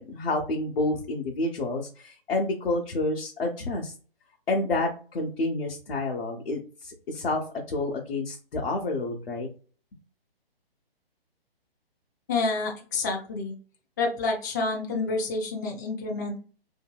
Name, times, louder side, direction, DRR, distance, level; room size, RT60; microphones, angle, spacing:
voice 1, 0.0-3.9 4.5-9.5, left 2 dB, 70° left, 0 dB, 0.8 m, -29 dB
voice 2, 12.3-13.5 14.0-16.4, left 3 dB, 20° left, 0 dB, 0.4 m, -28 dB
2.7 x 2.7 x 2.2 m, 0.38 s
figure-of-eight pair, 140°, 30 cm